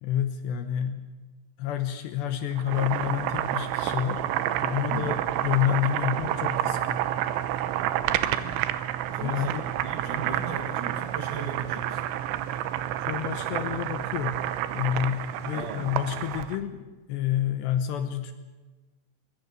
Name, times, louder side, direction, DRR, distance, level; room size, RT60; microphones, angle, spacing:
voice 1, 0.0-1.1 1.6-4.2 4.6-7.0 9.2-9.6 13.1-14.5 14.8-18.3, left 11 dB, 75° left, 8 dB, 2.8 m, -29 dB
Boiling, 2.5-16.6, right 12 dB, 80° right, 3.1 m, -29 dB
voice 2, 4.8-5.2 8.2-8.6 9.0-12.0 15.5-15.9, right 5 dB, 60° right, 3 dB, 2.2 m, -38 dB
23.0 x 22.5 x 6.8 m, 1.2 s
omnidirectional pair, 5.7 m